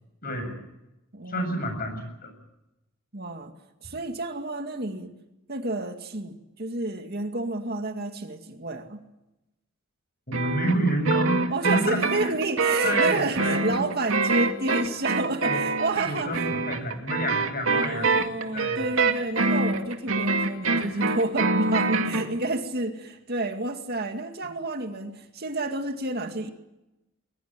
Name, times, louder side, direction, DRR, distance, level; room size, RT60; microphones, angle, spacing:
voice 1, 0.2-0.6 1.3-2.3 10.3-12.3 12.8-13.8 15.2-15.6 16.0-18.3 18.5-18.9 20.7-21.1, right 1 dB, 45° left, 6 dB, 7.7 m, -29 dB
voice 2, 1.1-1.5 3.1-3.5 3.8-5.1 5.5-9.0 11.5-16.4 17.7-26.5, right 2 dB, 50° right, 6 dB, 2.2 m, -30 dB
sound 1, 10.3-22.3, right 3 dB, 85° right, 2.3 m, -25 dB
21.5 x 20.5 x 9.0 m, 0.94 s
head